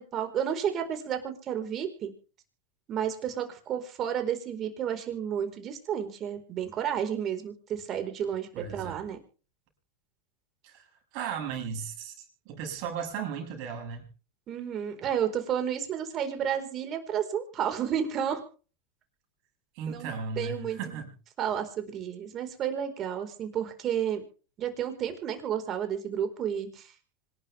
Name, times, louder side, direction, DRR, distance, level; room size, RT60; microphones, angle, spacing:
voice 1, 0.0-2.1 2.9-9.2 14.5-18.4 19.9-20.1 20.4-21.0 21.4-24.2 24.6-26.9, right 9 dB, 40° right, 7 dB, 4.5 m, -31 dB
voice 2, 8.5-9.0 10.6-10.8 11.1-14.1 19.8-21.1, right 6 dB, 55° right, 2 dB, 7.6 m, -36 dB
26.0 x 12.0 x 3.5 m, 0.38 s
hypercardioid pair, 105°, 0 cm